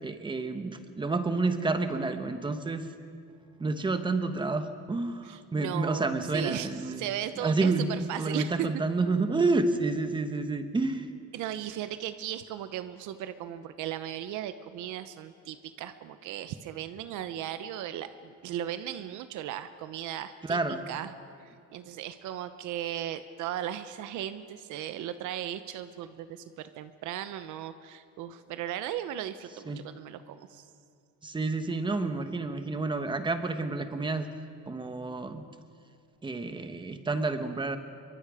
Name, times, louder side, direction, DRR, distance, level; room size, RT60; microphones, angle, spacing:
voice 1, 0.0-2.9 3.6-7.0 7.4-11.1 20.4-20.8 29.7-29.8 31.2-34.3 34.7-35.4 36.2-37.8, right 3 dB, 15° right, 8 dB, 1.2 m, -29 dB
voice 2, 5.2-8.7 11.3-20.6 20.9-21.1 21.4-30.7, right 11 dB, 75° right, 11 dB, 0.9 m, -37 dB
27.0 x 23.5 x 5.0 m, 2.5 s
cardioid pair, 155°, 30 cm